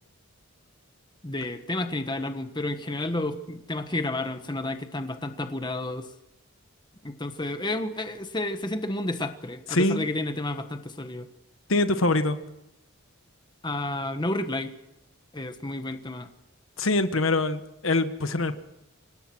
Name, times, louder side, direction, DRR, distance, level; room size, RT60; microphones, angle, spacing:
voice 1, 1.2-6.1 7.0-11.3 13.6-14.7 15.3-16.3, left 2 dB, 20° left, 8 dB, 1.3 m, -31 dB
voice 2, 9.7-10.0 11.7-12.4 16.8-18.5, left 2 dB, 65° left, 9 dB, 1.4 m, -24 dB
26.0 x 18.0 x 6.2 m, 0.87 s
head